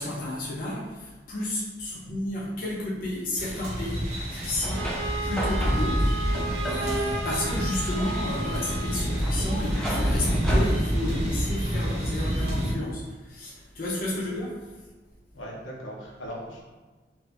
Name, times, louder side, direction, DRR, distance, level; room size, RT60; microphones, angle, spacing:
voice 1, 0.0-4.9 5.2-14.6, left 1 dB, 45° left, -5 dB, 0.6 m, -32 dB
sound 1, 3.4-12.7, equal, 35° right, 0.7 m, -28 dB
sound 2, 4.1-11.8, equal, 5° left, 0.3 m, -37 dB
Wind instrument woodwind instrument, 4.7-9.2, right 2 dB, 80° right, 0.4 m, -34 dB
voice 2, 15.3-16.6, equal, 85° left, -3 dB, 0.8 m, -39 dB
2.7 x 2.5 x 3.3 m, 1.3 s
head